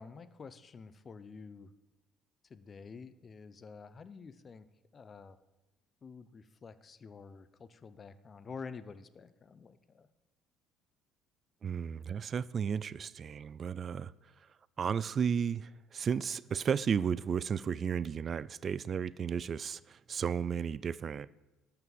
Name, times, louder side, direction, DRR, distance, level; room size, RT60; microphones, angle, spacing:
voice 1, 0.0-1.7 2.5-4.7 4.9-5.4 6.0-10.1, left 5 dB, 40° left, 14 dB, 0.8 m, -49 dB
voice 2, 11.6-14.1 14.8-21.3, right 7 dB, 45° right, 20 dB, 0.3 m, -33 dB
12.5 x 5.9 x 7.3 m, 1.0 s
hypercardioid pair, 65°, 0 cm